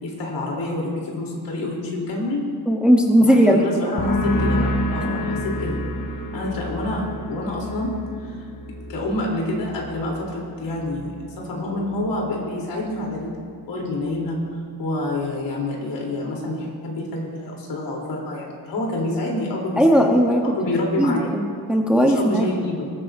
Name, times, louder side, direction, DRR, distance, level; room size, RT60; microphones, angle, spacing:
voice 1, 0.0-2.5 3.2-5.8 6.3-7.9 8.2-8.4 8.9-13.4 13.7-14.4 14.8-20.1 20.5-21.3 22.0-22.9, left 2 dB, 75° left, -2 dB, 3.4 m, -27 dB
voice 2, 2.7-3.6 19.8-20.4 21.0-22.5, equal, ahead, 1 dB, 0.8 m, -17 dB
sound 1, 4.0-11.4 11.7-12.3, left 1 dB, 45° left, 1.4 m, -28 dB
20.5 x 13.0 x 2.6 m, 2.3 s
wide cardioid pair, 155°, 43 cm